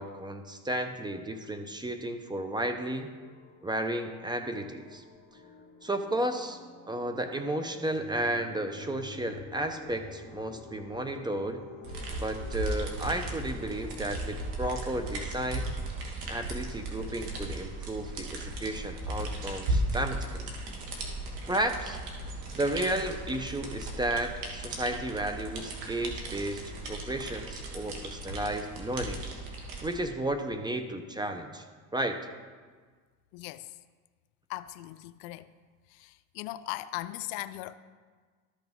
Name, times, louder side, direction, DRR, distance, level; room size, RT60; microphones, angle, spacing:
voice 1, 0.0-3.1 3.6-5.0 5.8-6.6 6.9-11.6 12.2-15.7 16.3-20.5 21.5-22.0 22.5-29.2 29.8-31.6 31.9-32.2, right 1 dB, 10° right, 0.7 m, -33 dB
sound 1, 2.3-14.9, left 4 dB, 15° left, 2.0 m, -50 dB
sound 2, 11.8-29.9, right 1 dB, 80° right, 1.7 m, -36 dB
voice 2, 33.3-33.8 34.5-35.5 35.9-37.7, left 16 dB, 75° left, 0.5 m, -39 dB
13.0 x 5.9 x 3.6 m
supercardioid pair, 95°, 40 cm